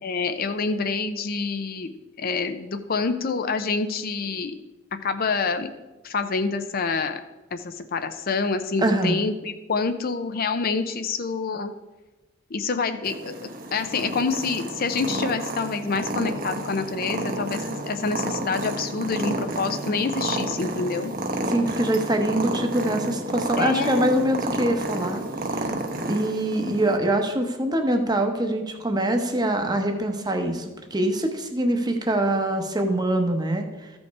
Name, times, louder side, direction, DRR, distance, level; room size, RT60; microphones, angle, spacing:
voice 1, 0.0-1.9 2.2-4.5 5.0-5.7 6.0-7.2 7.5-11.7 12.5-21.1 23.6-24.2, left 4 dB, 50° left, 8 dB, 0.5 m, -27 dB
voice 2, 8.8-9.2 21.5-25.2 25.6-25.7 26.1-33.9, right 1 dB, 20° right, 5 dB, 0.9 m, -24 dB
Purr, 13.0-27.0, right 1 dB, 45° right, 1.0 m, -30 dB
13.5 x 5.3 x 4.7 m, 1.1 s
head